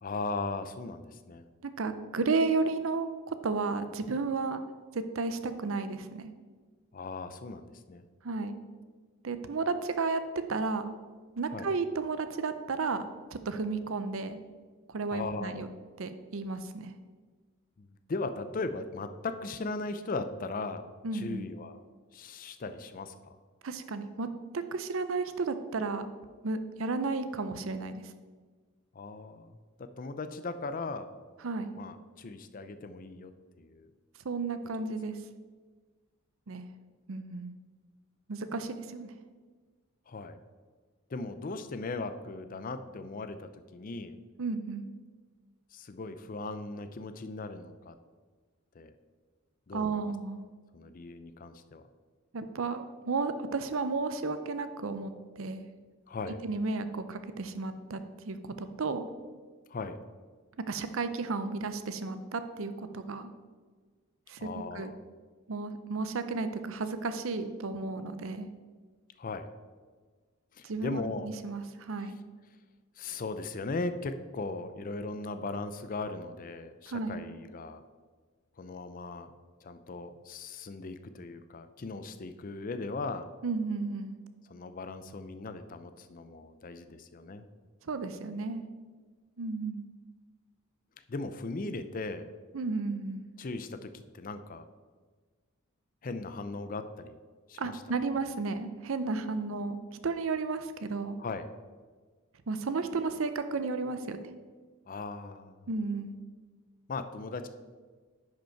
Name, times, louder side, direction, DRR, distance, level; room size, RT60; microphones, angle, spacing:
voice 1, 0.0-1.4 6.9-8.0 11.5-11.7 15.1-15.7 17.8-20.8 21.1-21.8 22.1-23.4 28.9-31.1 31.8-33.3 33.6-33.9 40.1-40.4 41.1-44.2 45.7-48.0 48.7-48.9 49.7-50.1 50.7-51.8 56.1-56.4 59.7-60.0 64.4-65.0 69.2-69.5 70.5-71.3 73.0-77.8 78.6-79.3 79.6-83.3 84.5-87.4 91.1-92.3 93.4-94.6 96.0-97.2 97.5-97.7 101.2-101.5 104.9-105.6 106.9-107.5, left 3 dB, 40° left, 10 dB, 0.5 m, -38 dB
voice 2, 1.6-4.6 4.9-6.3 8.2-8.6 9.2-10.2 10.5-11.0 11.4-13.0 13.3-14.4 14.9-15.7 16.0-16.9 21.0-21.5 23.6-26.1 26.4-28.1 31.4-31.7 34.2-35.2 36.5-36.7 37.1-37.5 38.3-39.1 44.4-44.9 49.7-50.5 52.3-55.6 56.2-58.0 58.3-59.1 60.7-63.3 64.3-64.9 65.5-68.5 70.6-72.2 76.9-77.2 83.4-84.2 87.8-88.7 89.4-89.8 92.5-93.3 97.6-99.8 100.0-101.2 102.5-104.2 105.7-106.2, right 4 dB, 65° right, 10 dB, 0.6 m, -33 dB
10.0 x 5.2 x 4.5 m, 1.5 s
head